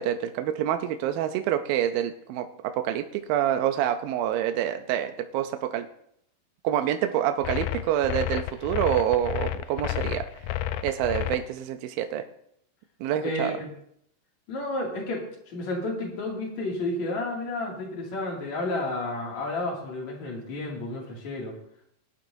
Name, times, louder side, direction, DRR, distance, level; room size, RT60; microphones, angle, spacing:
voice 1, 0.0-2.5 2.7-5.9 6.6-10.3 10.8-12.2 13.0-13.5, right 11 dB, 80° right, 7 dB, 2.4 m, -27 dB
sound 1, 7.4-11.4, left 13 dB, 80° left, 1.9 m, -30 dB
voice 2, 13.2-13.7 14.5-21.6, left 2 dB, 50° left, -1 dB, 3.5 m, -31 dB
20.0 x 11.5 x 2.7 m, 0.72 s
omnidirectional pair, 4.2 m